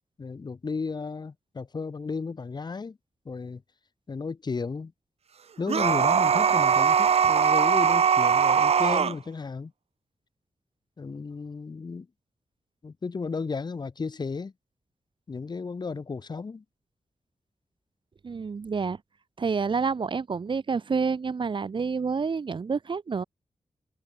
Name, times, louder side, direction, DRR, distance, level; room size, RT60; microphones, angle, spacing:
voice 1, 0.2-3.0 3.2-3.6 4.1-4.9 5.6-9.7 11.0-12.1 12.8-14.5 15.3-16.6, left 4 dB, 40° left, 5.8 m, -34 dB
sound 1, 5.7-9.1, right 7 dB, 65° right, 1.2 m, -21 dB
voice 2, 18.2-19.0 19.4-23.2, right 5 dB, 45° right, 4.0 m, -28 dB
wide cardioid pair, 175°, 11 cm